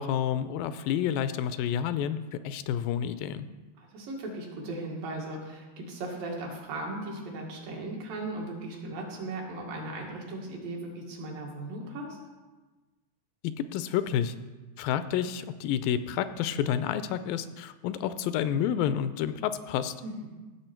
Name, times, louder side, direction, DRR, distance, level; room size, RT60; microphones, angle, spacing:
voice 1, 0.0-3.5 13.6-14.4 14.8-19.9, left 9 dB, 85° left, 12 dB, 2.3 m, -29 dB
voice 2, 3.8-12.2 20.0-20.3, right 2 dB, 75° right, -1 dB, 3.5 m, -37 dB
16.0 x 7.3 x 4.5 m, 1.2 s
omnidirectional pair, 4.0 m